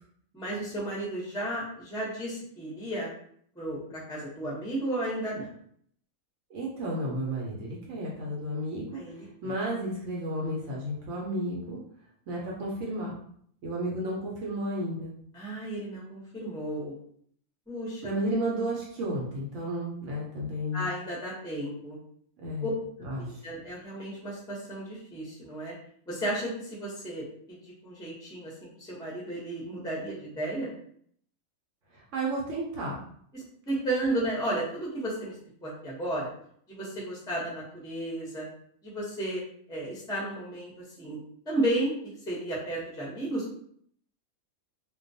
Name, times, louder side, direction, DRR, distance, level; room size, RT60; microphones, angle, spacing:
voice 1, 0.3-3.1 3.5-5.5 8.9-9.5 15.3-16.9 17.7-18.1 20.7-22.0 22.6-22.7 23.3-25.7 26.1-30.7 33.3-35.4 35.6-36.3 36.7-38.5 38.8-39.4 39.7-40.7 41.0-41.2 41.5-42.0 42.3-43.5, right 1 dB, 5° left, -5 dB, 0.4 m, -33 dB
voice 2, 6.5-11.8 12.3-13.2 13.6-15.1 18.0-20.9 22.4-22.7 23.0-23.4 31.9-33.0, right 1 dB, 70° right, -3 dB, 0.9 m, -32 dB
2.2 x 2.2 x 2.6 m, 0.64 s
omnidirectional pair, 1.5 m